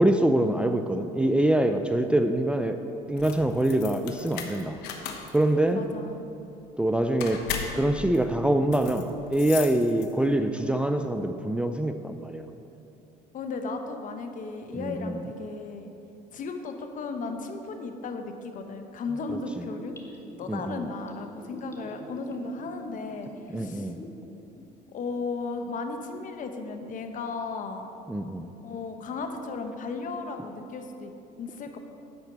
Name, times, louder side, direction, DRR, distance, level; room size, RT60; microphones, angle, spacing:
voice 1, 0.0-2.8 3.1-4.8 5.3-5.8 6.8-12.5 14.8-15.2 19.6-19.7 20.5-20.9 23.5-24.0 28.1-28.5, right 1 dB, 5° right, 7 dB, 0.4 m, -25 dB
sound 1, 3.0-10.4, left 7 dB, 80° left, 1.0 m, -38 dB
voice 2, 5.7-6.3 13.3-15.9 16.3-20.0 20.4-23.3 23.6-23.9 24.9-27.9 28.6-31.1 31.4-31.8, left 4 dB, 50° left, 6 dB, 1.0 m, -35 dB
Gurgling / Bathtub (filling or washing), 19.1-24.2 24.6-24.7, left 1 dB, 15° left, 1.4 m, -45 dB
11.0 x 4.4 x 7.2 m, 2.8 s
supercardioid pair, 85°, 17 cm